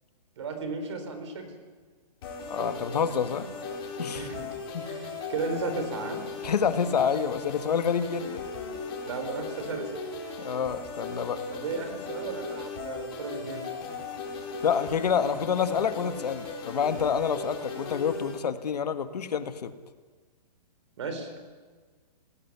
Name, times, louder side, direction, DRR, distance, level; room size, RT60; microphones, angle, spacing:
voice 1, 0.4-1.5 4.1-4.5 4.9-6.2 9.0-9.9 11.5-13.7 21.0-21.4, right 4 dB, 45° right, 7 dB, 4.3 m, -34 dB
sound 1, 2.2-18.4, left 3 dB, 35° left, 4.7 m, -37 dB
voice 2, 2.5-3.5 4.0-4.3 4.7-4.9 6.4-8.4 10.4-11.4 14.6-19.7, left 7 dB, 70° left, 9 dB, 1.8 m, -28 dB
19.5 x 18.0 x 9.6 m, 1.5 s
hypercardioid pair, 180°, 21 cm